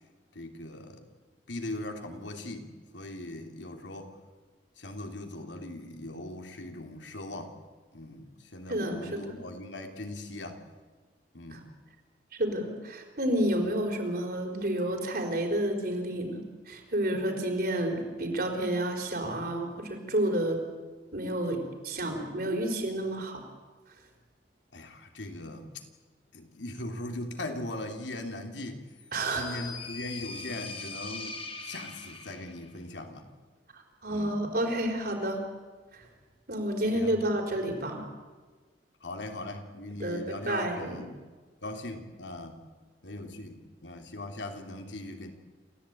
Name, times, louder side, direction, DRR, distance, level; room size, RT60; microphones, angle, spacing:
voice 1, 0.3-1.1 1.5-4.2 4.8-7.5 7.9-10.6 11.3-11.7 24.7-25.7 26.3-28.8 29.3-33.2 34.1-34.4 36.9-37.2 39.0-41.2 41.6-42.7 43.0-45.3, left 1 dB, 85° left, 4 dB, 3.0 m, -40 dB
voice 2, 8.7-9.4 11.5-11.6 12.4-20.6 21.1-23.4 29.1-29.6 34.0-35.4 35.9-36.0 36.5-38.0 40.0-41.0, right 1 dB, 55° right, 2 dB, 4.6 m, -30 dB
sound 1, 29.0-32.7, left 4 dB, 30° left, 2.0 m, -41 dB
28.5 x 14.5 x 9.1 m, 1.4 s
head